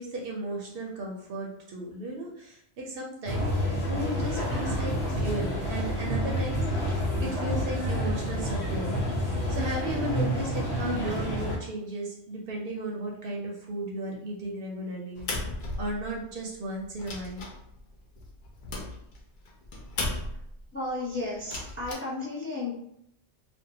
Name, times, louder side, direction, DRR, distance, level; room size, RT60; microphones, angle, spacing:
voice 1, 0.0-15.2 15.8-17.5, right 1 dB, 65° right, -1 dB, 0.7 m, -35 dB
sound 1, 3.3-11.6, equal, 75° left, 1.1 m, -29 dB
sound 2, 15.2-16.4 16.8-20.6 21.4-21.9, left 2 dB, 55° left, 0.6 m, -36 dB
voice 2, 20.7-22.8, left 2 dB, 15° left, -5 dB, 0.5 m, -33 dB
2.6 x 2.1 x 2.7 m, 0.76 s
omnidirectional pair, 1.1 m